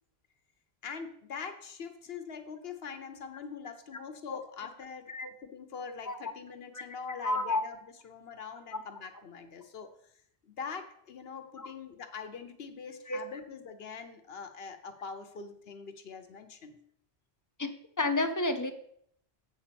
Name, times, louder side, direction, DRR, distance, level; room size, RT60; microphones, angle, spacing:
voice 1, 0.8-5.1 5.4-9.9 10.5-16.8, left 6 dB, 70° left, 8 dB, 1.0 m, -43 dB
voice 2, 7.2-7.6 11.6-11.7 13.1-13.2 17.6-17.7 18.0-18.7, left 2 dB, 25° left, 8 dB, 0.5 m, -30 dB
8.1 x 4.2 x 6.8 m, 0.68 s
omnidirectional pair, 1.1 m